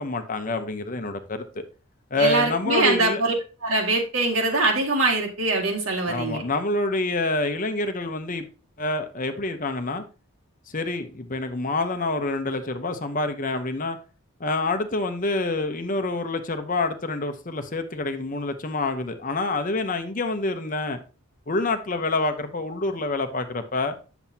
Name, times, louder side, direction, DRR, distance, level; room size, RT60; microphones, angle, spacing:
voice 1, 0.0-1.6 2.1-3.2 6.1-8.5 8.8-10.0 10.7-14.0 14.4-21.0 21.5-23.9, left 2 dB, 40° left, 0.8 m, -27 dB
voice 2, 2.2-3.3 3.6-6.4, right 2 dB, 70° right, 2.2 m, -23 dB
8.9 x 7.0 x 2.8 m
head